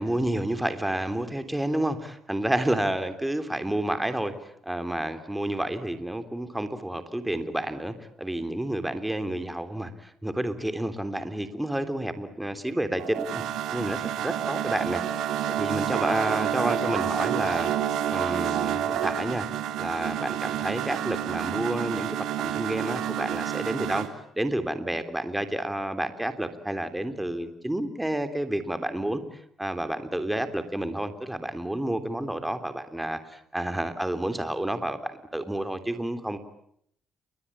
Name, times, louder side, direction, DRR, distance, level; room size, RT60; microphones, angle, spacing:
voice 1, 0.0-4.3 4.6-13.4 13.7-17.7 18.1-19.5 19.8-24.1 24.3-29.2 29.6-36.4, right 1 dB, 10° right, 9 dB, 3.4 m, -30 dB
sound 1, 13.0-24.1, right 10 dB, 85° right, 3.3 m, -29 dB
29.5 x 23.0 x 8.7 m, 0.69 s
cardioid pair, 90°, 0 cm